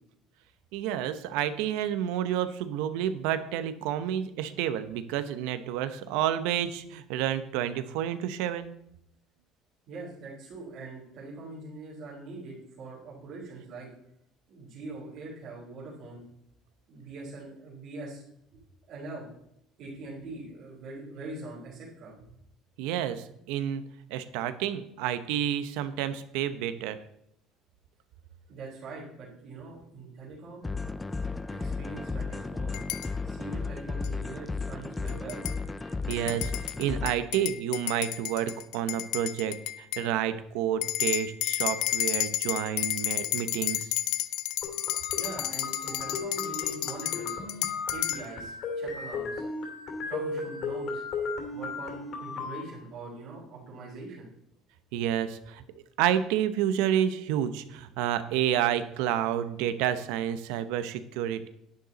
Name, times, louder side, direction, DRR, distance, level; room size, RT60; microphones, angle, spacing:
voice 1, 0.7-8.7 22.8-23.8 24.1-27.0 36.1-36.5 36.8-43.9 54.9-55.6 56.0-61.5, right 10 dB, 90° right, 12 dB, 0.8 m, -29 dB
voice 2, 9.9-13.9 14.5-16.2 16.9-18.2 18.5-18.6 18.9-19.3 19.8-22.3 28.5-30.7 31.6-32.8 33.2-35.4 45.2-47.4 47.9-49.4 50.1-51.0 51.5-54.3, right 3 dB, 50° right, -7 dB, 3.7 m, -42 dB
sound 1, 30.6-37.1, left 4 dB, 10° left, 0.4 m, -34 dB
coffee cup spoon, 32.7-33.1 34.0-34.1 35.1-35.6 36.1-40.1 40.8-48.2, left 15 dB, 80° left, 0.6 m, -31 dB
sound 2, 44.6-52.6, left 4 dB, 50° left, 2.8 m, -35 dB
10.5 x 9.6 x 4.0 m, 0.77 s
cardioid pair, 150°, 0 cm